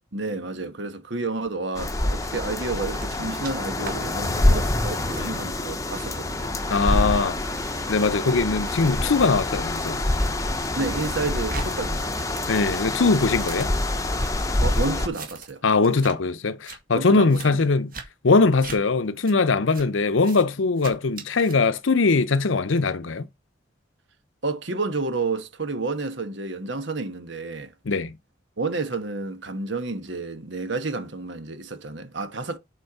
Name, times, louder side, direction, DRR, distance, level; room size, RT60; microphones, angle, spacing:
voice 1, 0.1-6.6 10.8-12.5 14.6-15.6 16.9-17.7 24.4-27.7 28.6-32.6, right 3 dB, 65° right, 1.3 m, -30 dB
sound 1, 1.7-15.1, left 2 dB, 15° left, 0.8 m, -26 dB
sound 2, 2.9-3.5 3.8-3.9 4.3-4.6 5.1-5.3 5.8-6.1 6.7-10.3 10.7-11.7 11.9-14.3 14.7-15.6 15.8-16.1 16.5-16.8 17.3-17.5 17.9-18.1 18.6-18.8 19.2-19.3 19.7-19.9 20.2-20.4 20.8-21.5, right 3 dB, 45° right, 1.9 m, -40 dB
voice 2, 6.7-7.4 7.9-10.0 12.5-13.7 15.6-17.9 18.2-23.3 27.9-28.2, left 4 dB, 80° left, 0.7 m, -21 dB
7.9 x 4.4 x 5.8 m
head